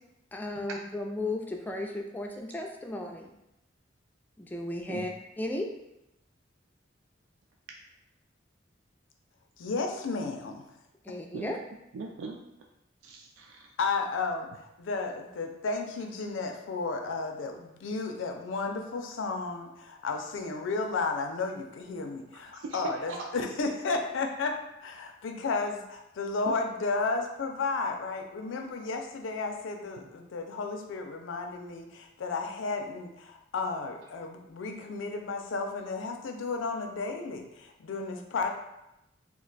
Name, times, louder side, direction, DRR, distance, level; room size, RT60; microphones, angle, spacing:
voice 1, 0.3-3.3 4.4-5.7 11.0-11.6, left 2 dB, 10° left, 1 dB, 0.3 m, -35 dB
voice 2, 9.6-10.6 11.1-11.2 13.8-24.6 24.8-38.5, left 3 dB, 80° left, 4 dB, 0.4 m, -33 dB
voice 3, 11.9-12.4 13.0-13.7 22.5-23.3 26.5-26.6, right 4 dB, 85° right, 1 dB, 0.3 m, -38 dB
2.4 x 2.2 x 3.8 m, 0.87 s
head